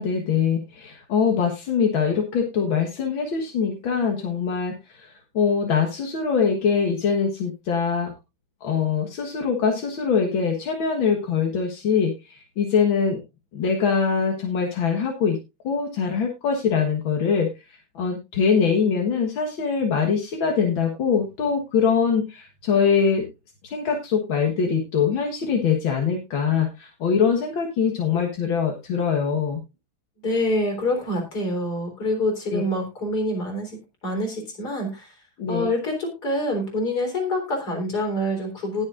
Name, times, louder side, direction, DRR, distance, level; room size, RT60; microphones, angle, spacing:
voice 1, 0.0-8.1 8.6-13.2 13.5-15.4 15.6-23.3 23.6-29.6 32.5-32.6 35.4-35.7, left 6 dB, 80° left, 2 dB, 2.2 m, -23 dB
voice 2, 30.2-35.1 35.5-38.8, left 1 dB, 50° left, 2 dB, 4.4 m, -26 dB
19.5 x 7.3 x 2.5 m, 0.24 s
omnidirectional pair, 2.1 m